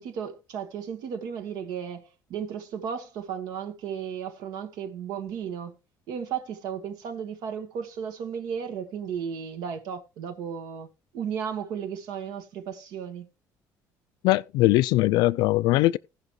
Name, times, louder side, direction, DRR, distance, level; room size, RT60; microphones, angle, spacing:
voice 1, 0.0-5.8 6.1-10.9 11.1-13.3, right 7 dB, 65° right, 1.4 m, -34 dB
voice 2, 14.2-16.0, left 18 dB, 80° left, 0.4 m, -21 dB
17.5 x 5.9 x 3.1 m
cardioid pair, 175°, 7 cm